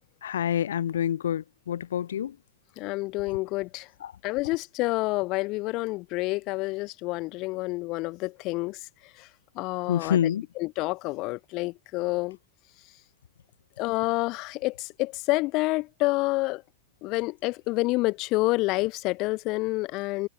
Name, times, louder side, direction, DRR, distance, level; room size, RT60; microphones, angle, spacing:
voice 1, 0.2-2.4 4.0-4.1 9.9-10.5, left 10 dB, 65° left, 5.5 m, -27 dB
voice 2, 2.8-3.9 4.2-8.8 9.2-9.3 9.6-10.2 10.6-12.4 13.8-16.6 17.0-20.3, left 22 dB, 40° left, 3.7 m, -28 dB
figure-of-eight pair, 90°, 0 cm